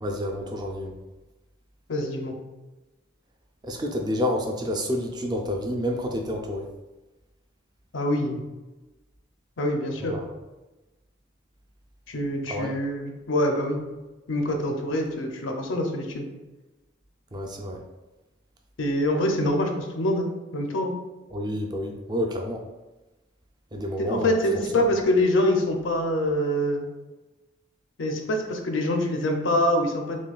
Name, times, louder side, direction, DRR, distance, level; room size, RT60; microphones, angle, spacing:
voice 1, 0.0-1.0 3.6-6.7 10.0-10.3 12.5-12.7 17.3-17.8 21.3-22.6 23.7-24.4 24.7-24.8, equal, 20° right, 2 dB, 0.4 m, -29 dB
voice 2, 1.9-2.4 7.9-8.4 9.6-10.2 12.1-13.8 14.3-16.2 18.8-20.9 24.0-26.9 28.0-30.2, left 1 dB, 80° left, 3 dB, 0.6 m, -25 dB
6.1 x 2.3 x 2.4 m, 1.1 s
head